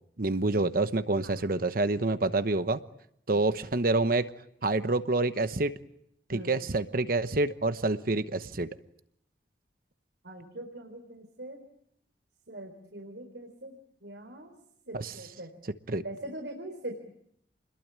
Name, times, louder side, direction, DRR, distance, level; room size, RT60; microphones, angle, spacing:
voice 1, 0.2-2.8 3.3-4.3 4.6-5.7 6.3-8.7 14.9-15.1 15.9-16.0, right 2 dB, 55° right, 11 dB, 1.0 m, -27 dB
voice 2, 10.2-11.6 12.5-13.8 14.0-14.5 14.9-15.5 16.0-16.9, right 1 dB, 80° right, 4 dB, 4.2 m, -42 dB
29.5 x 21.5 x 8.8 m, 0.74 s
head